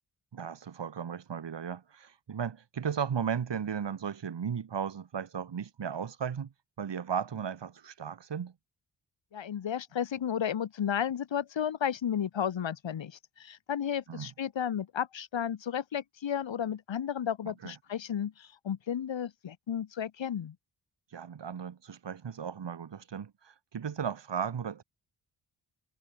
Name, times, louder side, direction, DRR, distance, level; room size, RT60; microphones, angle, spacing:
voice 1, 0.3-6.5 6.8-8.5 14.1-14.3 17.6-17.7 21.1-24.8, right 7 dB, 65° right, 5.6 m, -35 dB
voice 2, 9.3-20.6, left 9 dB, 80° left, 2.6 m, -33 dB
wide cardioid pair, 155°, 45 cm